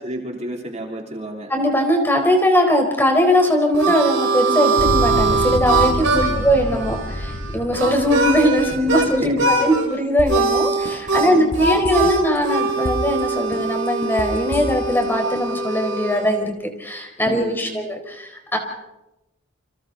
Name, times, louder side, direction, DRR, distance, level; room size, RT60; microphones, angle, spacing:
voice 1, 0.0-1.5 6.1-6.5 8.7-9.7 11.1-11.7 17.2-17.8, right 1 dB, 35° right, 1 dB, 3.1 m, -32 dB
voice 2, 1.5-16.5 16.8-18.6, equal, 10° left, 3 dB, 4.4 m, -20 dB
Harmonica, 3.3-9.1 9.4-9.9 10.3-16.3, right 3 dB, 85° right, 4.9 m, -22 dB
sound 1, 4.8-9.7, left 1 dB, 90° left, 2.0 m, -28 dB
sound 2, 10.2-10.5 10.8-12.4 12.7-13.2 13.5-15.0 15.3-15.4, left 1 dB, 60° left, 5.9 m, -29 dB
29.5 x 26.5 x 4.0 m, 0.92 s
head